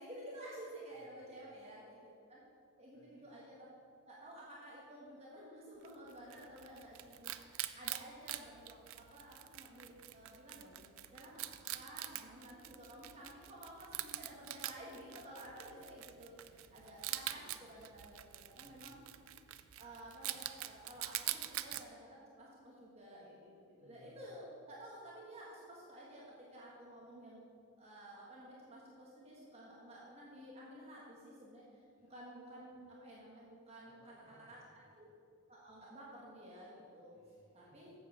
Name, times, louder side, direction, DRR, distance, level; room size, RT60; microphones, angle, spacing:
voice 1, 0.0-2.0 2.3-2.4 2.8-3.7 4.1-19.0 19.8-26.2 26.5-27.5 27.8-31.8 32.1-34.0 34.5-34.6 34.9-35.1 35.5-37.2 37.5-37.9, right 1 dB, 30° right, -5 dB, 1.5 m, -53 dB
voice 2, 0.9-1.4 2.9-3.3 16.6-16.8 18.5-19.0 23.8-24.3 32.0-32.1 33.8-34.9 37.1-37.8, equal, 65° left, -3 dB, 2.3 m, -67 dB
Wild animals, 5.8-21.8, right 14 dB, 65° right, 0.4 m, -45 dB
7.7 x 7.5 x 6.5 m, 2.4 s
head